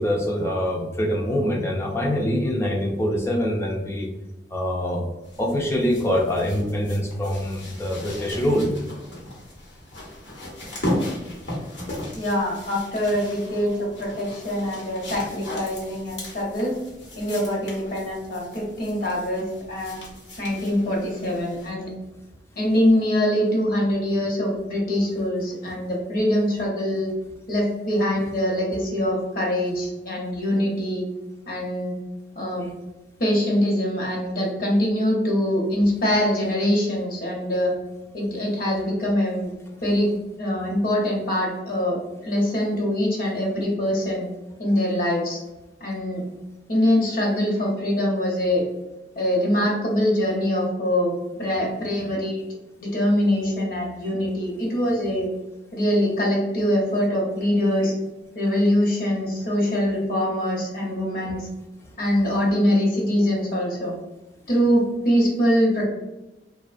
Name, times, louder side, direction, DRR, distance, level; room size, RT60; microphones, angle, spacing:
voice 1, 0.0-4.1 4.5-5.1 5.4-8.7, equal, 15° left, -1 dB, 0.3 m, -24 dB
sound 1, 5.2-21.7 22.7-22.8, left 1 dB, 85° left, 0.9 m, -36 dB
voice 2, 12.1-16.8 17.2-20.0 20.4-21.9 22.6-27.1 27.5-31.0 31.5-31.9 32.4-32.7 33.2-37.7 38.1-39.5 39.8-44.3 44.6-45.4 45.8-46.2 46.7-48.6 49.2-51.1 51.4-52.4 52.8-55.3 55.7-57.9 58.3-61.5 62.0-63.9 64.5-65.9, equal, 55° left, -2 dB, 0.8 m, -23 dB
2.6 x 2.1 x 2.4 m, 1.0 s
head